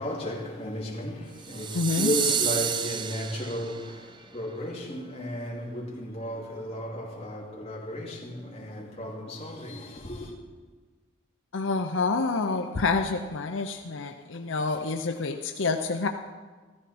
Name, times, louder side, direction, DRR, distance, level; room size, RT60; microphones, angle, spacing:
voice 1, 0.0-10.3, left 1 dB, 30° left, 2.6 m, -34 dB
sound 1, 1.4-3.9, right 8 dB, 25° right, 0.3 m, -29 dB
voice 2, 1.7-2.1 11.5-16.1, left 3 dB, 75° left, 0.7 m, -28 dB
14.5 x 14.0 x 4.3 m
head